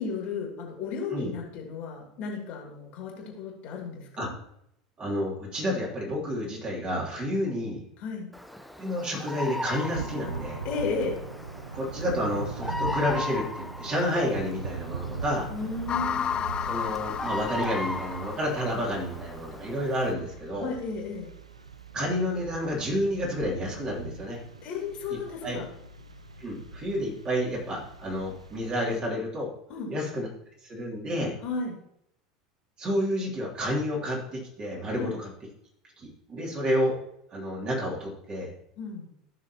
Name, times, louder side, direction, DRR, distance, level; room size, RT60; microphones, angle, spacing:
voice 1, 0.0-4.3 8.0-8.3 10.6-11.2 15.5-16.4 20.6-21.3 24.6-25.7 29.7-29.9 31.4-31.8 34.9-35.2 38.8-39.1, left 4 dB, 45° left, 0 dB, 2.7 m, -34 dB
voice 2, 5.0-7.8 8.8-10.6 11.7-15.5 16.7-20.7 21.9-24.4 25.4-25.6 26.4-29.5 29.9-30.3 30.6-31.3 32.8-35.3 36.0-37.0 37.3-38.5, equal, 30° right, -3 dB, 3.2 m, -30 dB
Bird vocalization bird call bird song, 8.3-20.1, left 1 dB, ahead, 0.7 m, -38 dB
Thunder / Rain, 9.9-29.0, right 4 dB, 80° right, 0.6 m, -40 dB
sound 1, 15.9-19.2, left 8 dB, 25° left, 0.3 m, -32 dB
15.5 x 6.3 x 3.0 m, 0.75 s
figure-of-eight pair, 75°, 3 cm